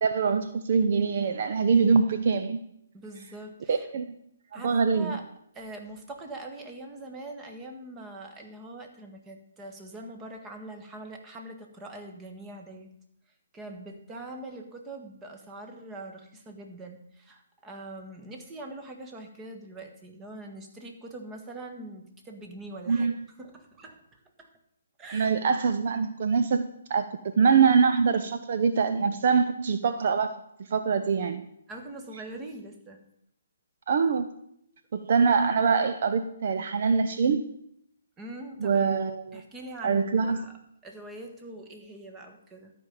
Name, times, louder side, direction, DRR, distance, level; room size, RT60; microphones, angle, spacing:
voice 1, 0.0-2.6 3.7-4.1 4.5-5.1 22.9-23.1 25.1-27.0 27.4-30.4 30.7-31.4 33.9-34.3 34.9-37.4 38.6-39.4 39.8-40.4, right 5 dB, 50° right, 8 dB, 0.7 m, -24 dB
voice 2, 2.9-3.9 4.5-5.2 5.5-12.9 13.5-24.0 24.4-24.5 25.0-25.4 31.7-33.0 38.2-38.8 39.3-40.6 40.8-42.7, right 2 dB, 15° right, 4 dB, 1.5 m, -43 dB
12.5 x 5.4 x 7.1 m, 0.73 s
figure-of-eight pair, 140°, 0 cm